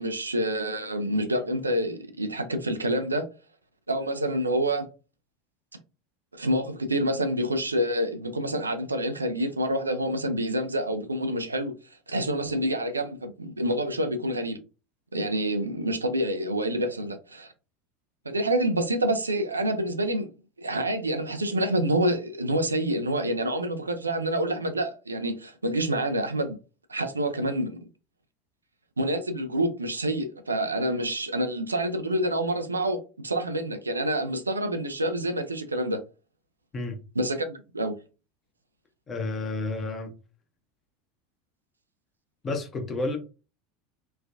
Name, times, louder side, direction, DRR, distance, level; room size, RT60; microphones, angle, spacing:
voice 1, 0.0-3.2 3.9-4.9 6.3-11.7 12.1-14.6 15.1-17.5 18.3-20.3 20.6-26.6 26.9-27.8 29.0-36.0 37.2-37.9, right 1 dB, 80° right, 0.4 m, -27 dB
voice 2, 39.1-40.1 42.4-43.2, left 2 dB, 30° left, 0.8 m, -30 dB
3.1 x 2.1 x 2.4 m
figure-of-eight pair, 75°, 0 cm